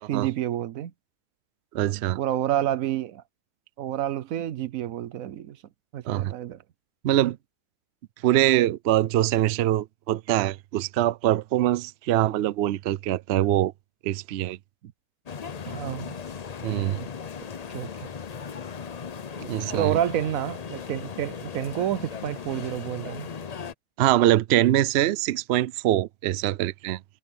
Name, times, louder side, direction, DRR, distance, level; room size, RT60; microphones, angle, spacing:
voice 1, 0.1-0.9 2.2-3.2 3.8-5.6 5.9-6.6 14.8-14.9 15.6-16.1 17.0-17.1 17.7-17.9 19.7-23.3, right 11 dB, 65° right, 1.0 m, -29 dB
voice 2, 1.7-2.2 6.1-6.3 7.0-7.4 8.2-13.7 14.0-14.6 16.6-17.0 19.4-20.0 24.0-27.0, right 13 dB, 80° right, 0.5 m, -23 dB
sound 1, 15.3-23.7, left 6 dB, 65° left, 0.4 m, -37 dB
omnidirectional pair, 1.7 m